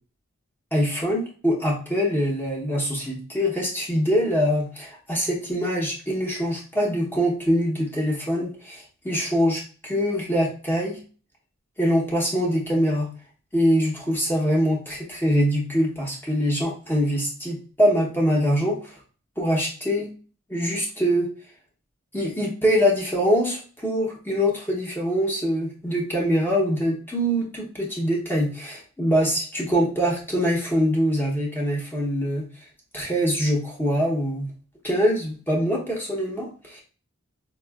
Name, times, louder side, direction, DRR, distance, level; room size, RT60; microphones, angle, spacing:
voice 1, 0.7-11.0 11.8-13.1 13.5-18.9 19.4-20.1 20.5-21.3 22.1-32.4 32.9-34.5 34.8-36.8, equal, 10° left, -3 dB, 0.8 m, -24 dB
4.1 x 2.4 x 2.3 m, 0.38 s
head